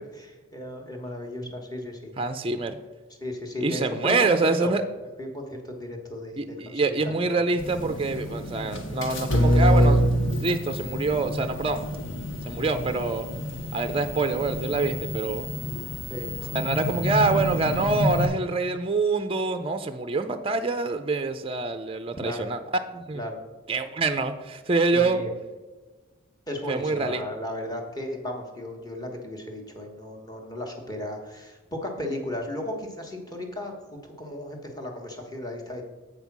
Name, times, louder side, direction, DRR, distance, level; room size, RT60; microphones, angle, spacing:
voice 1, 0.1-2.1 3.2-4.7 5.2-7.1 16.1-16.3 22.2-22.5 23.1-23.4 24.9-25.3 26.5-33.8 34.0-35.8, left 1 dB, 20° left, 1 dB, 1.3 m, -35 dB
voice 2, 2.2-2.8 3.6-4.8 6.4-10.0 10.4-11.9 12.5-13.3 13.7-15.5 16.5-23.2 23.7-25.2 26.7-27.2, right 3 dB, 25° right, 9 dB, 0.4 m, -26 dB
sound 1, 7.6-18.3, equal, 60° left, 1.1 m, -26 dB
8.0 x 5.5 x 6.0 m, 1.2 s
head